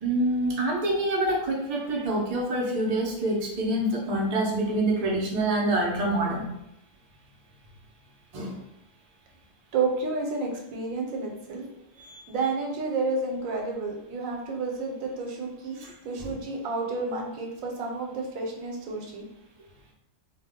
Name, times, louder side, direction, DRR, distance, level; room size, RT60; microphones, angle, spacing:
voice 1, 0.0-6.5 8.3-8.6 12.0-12.2 15.8-16.3, right 1 dB, 45° right, -3 dB, 0.5 m, -26 dB
voice 2, 9.7-11.6 12.3-15.8 16.0-19.2, right 3 dB, 85° right, 0 dB, 1.1 m, -30 dB
2.3 x 2.1 x 3.5 m, 0.83 s
omnidirectional pair, 1.4 m